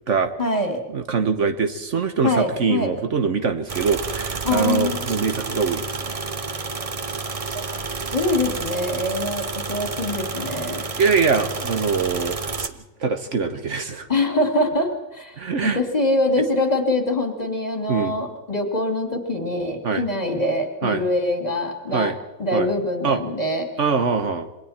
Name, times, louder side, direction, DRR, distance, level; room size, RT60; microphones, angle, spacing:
voice 1, 0.4-0.8 2.2-2.9 4.4-5.0 7.5-7.6 8.1-10.8 14.1-22.1 22.4-23.7, left 1 dB, 30° left, 4 dB, 2.9 m, -24 dB
voice 2, 0.9-6.2 11.0-12.7 13.0-14.1 15.4-15.8 17.9-18.1 19.8-20.0 20.8-21.0 21.9-22.2 22.5-22.7 23.0-23.2 23.8-24.5, right 5 dB, 60° right, 7 dB, 1.5 m, -23 dB
sound 1, 3.7-12.7, right 4 dB, 30° right, 0.8 m, -30 dB
27.0 x 22.5 x 4.4 m, 0.96 s
omnidirectional pair, 1.4 m